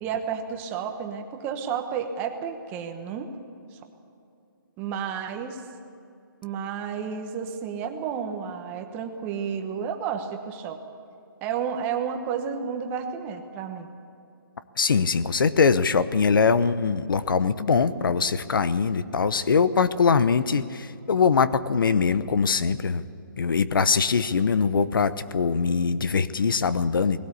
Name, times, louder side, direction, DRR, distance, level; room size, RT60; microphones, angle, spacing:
voice 1, 0.0-3.4 3.7-3.8 4.8-5.6 6.4-10.8 11.4-13.9, right 7 dB, 15° right, 6 dB, 1.1 m, -31 dB
voice 2, 14.8-23.0 23.4-27.2, left 5 dB, 70° left, 14 dB, 0.9 m, -22 dB
20.0 x 17.5 x 8.4 m, 2.6 s
hypercardioid pair, 165°, 12 cm